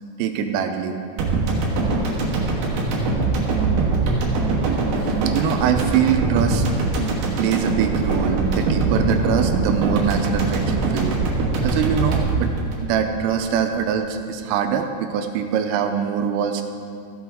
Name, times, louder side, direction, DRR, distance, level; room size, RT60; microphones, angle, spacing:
voice 1, 0.2-0.9 4.0-4.2 5.0-6.7 7.1-11.1 11.6-12.5 12.8-16.6, right 8 dB, 85° right, 6 dB, 3.1 m, -23 dB
sound 1, 1.2-13.5 13.8-13.9, right 3 dB, 65° right, 2.5 m, -22 dB
15.0 x 8.2 x 3.4 m, 2.4 s
omnidirectional pair, 5.8 m